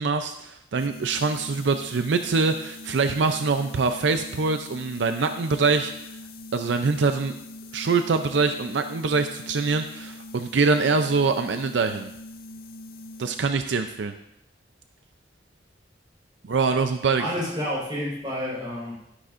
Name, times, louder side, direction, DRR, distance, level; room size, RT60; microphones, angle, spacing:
voice 1, 0.0-5.9 6.5-7.3 7.7-12.1 13.2-14.1 16.5-17.2, right 4 dB, 80° right, 8 dB, 0.5 m, -24 dB
sound 1, 0.7-13.7, left 2 dB, 50° left, 0.6 m, -43 dB
voice 2, 17.2-18.9, equal, 25° right, -6 dB, 4.2 m, -29 dB
12.0 x 9.7 x 2.5 m, 0.79 s
head